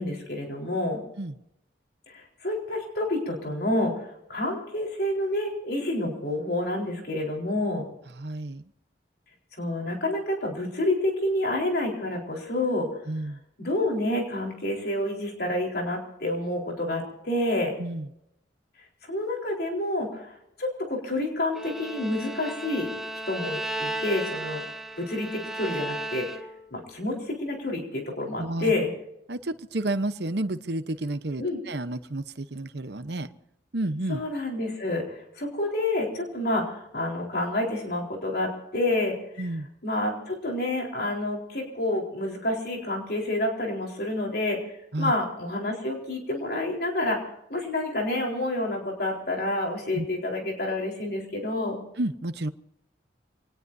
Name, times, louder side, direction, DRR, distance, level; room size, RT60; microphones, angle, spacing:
voice 1, 0.0-1.0 2.1-7.8 9.6-12.9 13.6-17.7 19.1-22.9 23.3-24.6 25.0-26.3 26.7-28.9 31.4-31.6 34.1-39.5 39.8-44.6 45.0-47.2 47.5-51.8, left 1 dB, 55° left, 0 dB, 4.2 m, -28 dB
voice 2, 8.2-8.6 13.1-13.4 17.8-18.1 28.4-28.7 29.3-33.3 33.7-34.2 39.4-39.7 44.9-45.1 49.9-50.0 52.0-52.5, right 2 dB, 65° right, 11 dB, 1.0 m, -30 dB
Bowed string instrument, 21.5-26.7, right 1 dB, ahead, 1.2 m, -34 dB
27.5 x 19.5 x 2.7 m, 0.81 s
head